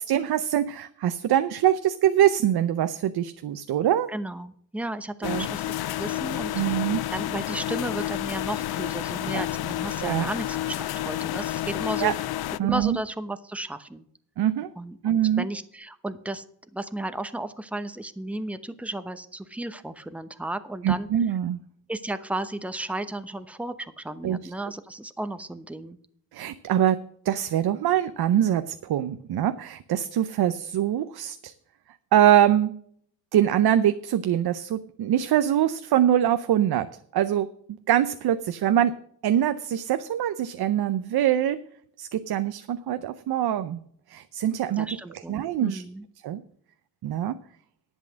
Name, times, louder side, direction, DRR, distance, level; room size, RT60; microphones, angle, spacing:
voice 1, 0.1-4.1 5.2-5.5 6.5-7.0 9.3-9.4 10.0-10.3 12.0-12.1 12.6-13.0 14.4-14.7 15.0-15.5 20.8-21.6 24.2-24.5 26.3-27.0 27.2-31.5 32.1-32.7 33.3-36.9 37.1-37.5 37.9-38.9 39.2-41.6 42.0-43.8 44.1-44.9 45.1-45.8 46.2-46.4 47.0-47.4, right 11 dB, 80° right, 11 dB, 0.7 m, -23 dB
voice 2, 4.1-6.5 7.1-12.1 12.6-14.0 14.8-16.4 16.7-21.1 21.9-26.0 44.8-46.1, right 1 dB, 5° right, 10 dB, 0.9 m, -34 dB
sound 1, 5.2-12.6, left 14 dB, 80° left, 0.5 m, -30 dB
11.0 x 8.3 x 6.3 m, 0.63 s
cardioid pair, 95°, 37 cm